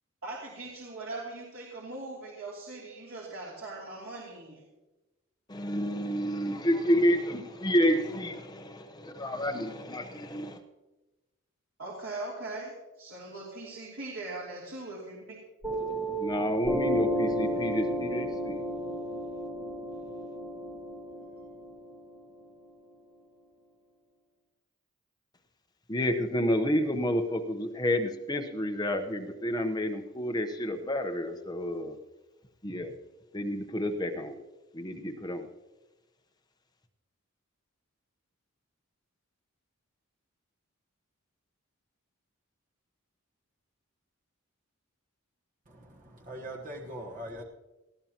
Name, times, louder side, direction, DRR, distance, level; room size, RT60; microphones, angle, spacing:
voice 1, 0.2-4.6 11.8-15.2, right 2 dB, 70° right, 3.1 m, -40 dB
voice 2, 5.5-10.6 16.2-18.6 25.9-32.0 32.6-32.9 33.3-34.3 34.7-35.5, equal, 20° left, 0.9 m, -29 dB
Piano, 15.6-22.7, right 1 dB, 10° right, 1.7 m, -33 dB
voice 3, 45.7-47.4, right 1 dB, 40° right, 1.2 m, -42 dB
19.5 x 14.5 x 3.0 m
head